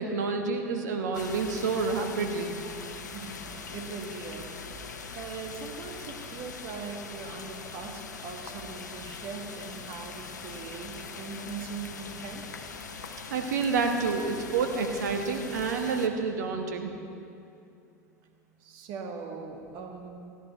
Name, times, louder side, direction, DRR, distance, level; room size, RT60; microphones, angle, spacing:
voice 1, 0.0-2.6 13.3-16.9, right 4 dB, 75° right, 4 dB, 1.3 m, -29 dB
sound 1, 1.1-16.1, left 5 dB, 85° left, 0.9 m, -42 dB
voice 2, 3.1-4.6 4.9-12.4 18.6-20.1, right 5 dB, 55° right, 3 dB, 1.6 m, -41 dB
16.0 x 11.0 x 4.6 m, 2.6 s
hypercardioid pair, 80°, 9 cm